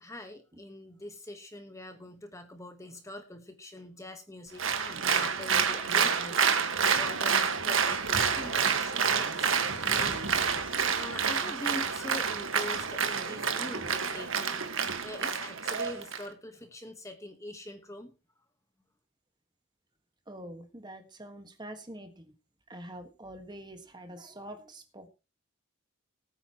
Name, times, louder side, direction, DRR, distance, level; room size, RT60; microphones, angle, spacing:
voice 1, 0.0-10.6 10.9-14.6 15.0-18.1, left 1 dB, 15° left, 1.2 m, -43 dB
Applause, 4.6-16.2, right 6 dB, 65° right, 1.6 m, -28 dB
voice 2, 20.3-22.3 22.7-25.1, right 1 dB, 20° right, 1.5 m, -45 dB
20.5 x 9.2 x 3.0 m
head